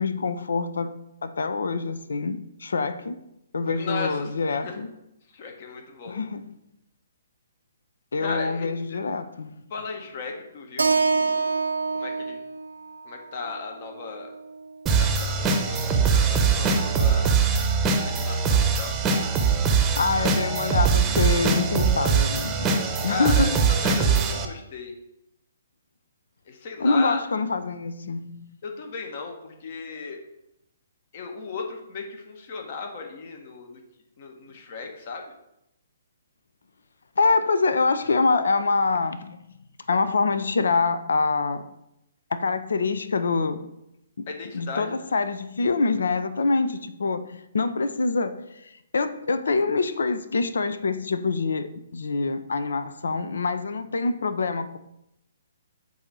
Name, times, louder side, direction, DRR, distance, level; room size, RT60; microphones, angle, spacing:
voice 1, 0.0-3.2 3.5-4.9 6.1-6.5 8.1-9.6 19.5-22.7 23.0-23.5 26.8-28.5 37.2-39.4 39.9-41.7 42.3-43.7 44.2-44.3 44.5-54.8, left 4 dB, 70° left, 0.5 m, -25 dB
voice 2, 3.6-4.8 5.3-6.2 8.2-9.0 9.7-11.5 11.9-12.4 13.0-14.3 14.9-17.3 18.0-18.9 23.0-25.0 26.5-27.3 28.6-30.2 31.1-33.8 34.2-35.3 44.3-45.0, left 4 dB, 45° left, 1.2 m, -36 dB
Keyboard (musical), 10.8-15.0, right 4 dB, 80° right, 0.7 m, -27 dB
sound 1, 14.9-24.5, right 5 dB, 15° right, 0.8 m, -22 dB
8.2 x 2.8 x 6.1 m
figure-of-eight pair, 130°, 0 cm